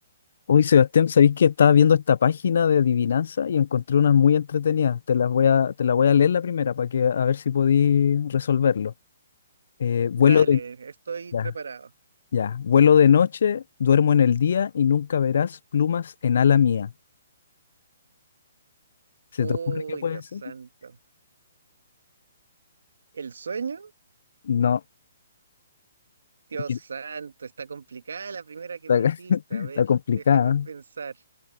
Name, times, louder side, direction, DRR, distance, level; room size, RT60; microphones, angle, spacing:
voice 1, 0.5-8.9 9.8-10.6 11.3-11.4 12.3-16.9 19.4-20.4 24.5-24.8 26.7-26.8 28.9-30.7, left 8 dB, 60° left, 0.4 m, -20 dB
voice 2, 10.2-11.9 19.4-21.0 23.1-23.9 26.5-29.8 30.2-31.2, right 5 dB, 85° right, 1.6 m, -36 dB
hypercardioid pair, 165°, 0 cm